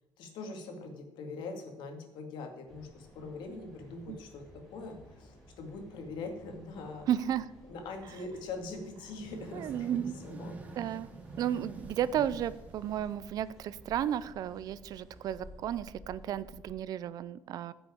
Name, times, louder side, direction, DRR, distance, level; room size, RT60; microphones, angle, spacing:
voice 1, 0.2-7.1 7.7-10.5, left 3 dB, 75° left, 4 dB, 2.3 m, -42 dB
Mechanical fan, 2.7-16.7, equal, ahead, 4.1 m, -55 dB
voice 2, 7.1-7.5 9.5-10.2 10.8-17.7, right 10 dB, 50° right, 17 dB, 0.5 m, -33 dB
sound 1, 9.0-13.6, right 3 dB, 20° right, 1.2 m, -48 dB
10.0 x 6.2 x 8.4 m, 0.98 s
cardioid pair, 170°, 8 cm